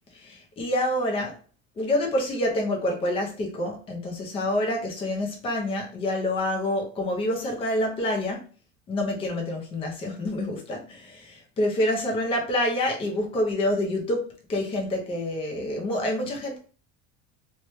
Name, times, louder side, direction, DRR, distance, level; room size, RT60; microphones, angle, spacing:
voice 1, 0.1-1.4 1.8-8.5 8.9-16.6, left 1 dB, 15° left, 1 dB, 0.5 m, -27 dB
3.0 x 2.2 x 3.0 m, 0.40 s
cardioid pair, 170°, 35 cm